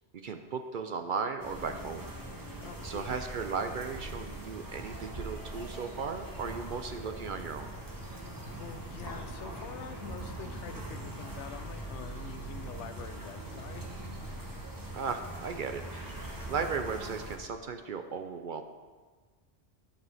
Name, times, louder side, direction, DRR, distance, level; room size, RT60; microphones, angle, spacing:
voice 1, 0.1-2.0 2.8-7.7 14.9-16.2 16.5-18.6, right 5 dB, 60° right, 7 dB, 0.6 m, -36 dB
sound 1, 1.4-17.4, right 1 dB, 20° right, 1.0 m, -42 dB
voice 2, 2.6-3.3 8.5-13.9, left 8 dB, 85° left, 10 dB, 0.9 m, -46 dB
11.0 x 6.9 x 4.1 m, 1.5 s
omnidirectional pair, 1.2 m